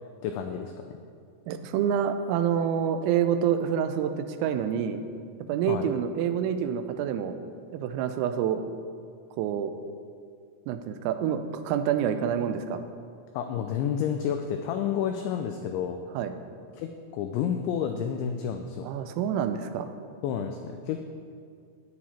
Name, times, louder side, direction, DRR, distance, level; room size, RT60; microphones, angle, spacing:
voice 1, 0.2-0.7 5.7-5.9 13.3-16.0 16.7-18.9 20.2-21.0, left 8 dB, 90° left, 5 dB, 2.6 m, -30 dB
voice 2, 1.5-5.0 5.5-7.3 7.7-8.6 9.4-9.7 10.7-12.8 16.1-16.3 18.8-19.9, right 8 dB, 85° right, 9 dB, 3.3 m, -27 dB
13.5 x 9.5 x 4.3 m, 2.2 s
omnidirectional pair, 6.0 m